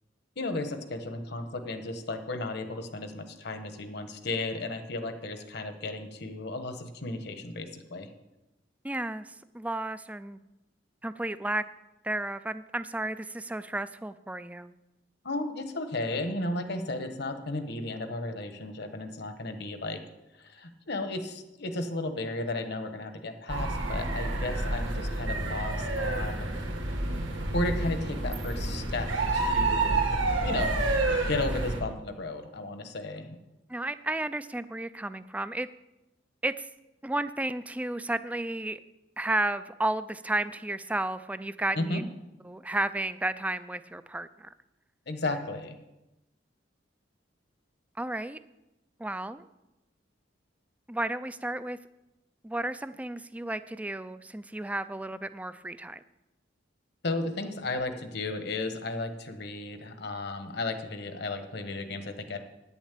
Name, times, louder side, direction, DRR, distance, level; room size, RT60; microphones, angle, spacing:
voice 1, 0.4-8.1 15.2-20.0 20.3-26.5 27.5-30.9 31.2-33.4 41.8-42.0 45.1-45.8 57.0-62.4, left 2 dB, 60° left, 8 dB, 1.2 m, -34 dB
voice 2, 8.8-10.4 11.0-11.6 12.0-14.7 33.7-35.7 36.4-36.7 37.0-38.8 39.2-42.0 42.4-44.5 48.0-48.4 49.0-49.4 50.9-51.8 52.4-56.0, right 2 dB, 10° right, 13 dB, 0.4 m, -32 dB
sound 1, 23.5-31.8, right 2 dB, 90° right, 2.2 m, -29 dB
9.6 x 7.2 x 8.3 m, 0.97 s
head